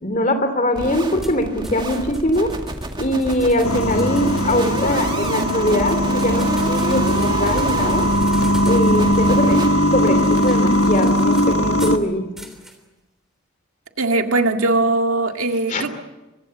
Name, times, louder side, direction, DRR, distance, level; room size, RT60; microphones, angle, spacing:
voice 1, 0.0-2.5 3.0-8.1 8.6-9.6 9.9-12.3 15.7-15.8, left 1 dB, 35° left, 9 dB, 2.9 m, -22 dB
sound 1, 0.7-9.7, right 1 dB, 20° right, 2.1 m, -30 dB
sound 2, 1.2-12.0 12.4-12.8, equal, ahead, 3.2 m, -38 dB
sound 3, 3.6-12.0, equal, 85° left, 1.3 m, -19 dB
voice 2, 14.0-15.9, right 2 dB, 75° right, 5 dB, 2.0 m, -20 dB
25.0 x 23.5 x 7.7 m, 1.1 s
head